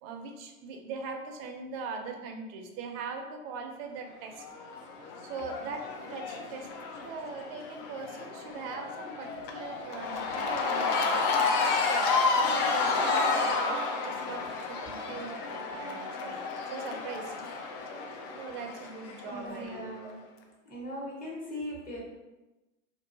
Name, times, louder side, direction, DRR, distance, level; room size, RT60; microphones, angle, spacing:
voice 1, 0.0-4.4 5.2-5.8 6.1-6.7 7.0-12.1 12.3-16.4 16.7-17.3 18.4-20.1, right 4 dB, 50° right, 3 dB, 0.6 m, -41 dB
Cheering / Crowd, 4.4-19.7, left 4 dB, 50° left, 0.5 m, -31 dB
voice 2, 19.2-20.2 20.6-22.0, equal, 25° left, -3 dB, 0.8 m, -39 dB
2.6 x 2.3 x 2.6 m, 1.1 s
hypercardioid pair, 95°, 39 cm